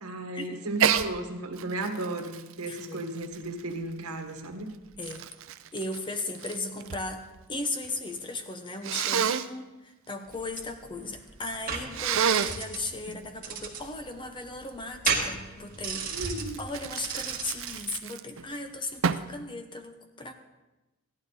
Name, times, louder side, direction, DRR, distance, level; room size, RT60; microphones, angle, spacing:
voice 1, 0.0-4.7 13.1-13.2 16.1-16.6, right 2 dB, 80° right, 4 dB, 1.6 m, -34 dB
Sneeze, 0.8-1.1 1.6-3.9 4.6-7.1 7.3-8.0 8.8-9.5 11.9-12.6 16.2-18.4 19.0-19.4, right 7 dB, 60° right, 0.5 m, -29 dB
voice 2, 2.7-3.1 5.0-5.2 5.7-16.3 16.6-20.3, left 2 dB, 20° left, 6 dB, 0.9 m, -37 dB
sound 1, 10.3-17.8, right 5 dB, 40° right, 1.8 m, -35 dB
15.5 x 11.5 x 4.0 m, 1.1 s
head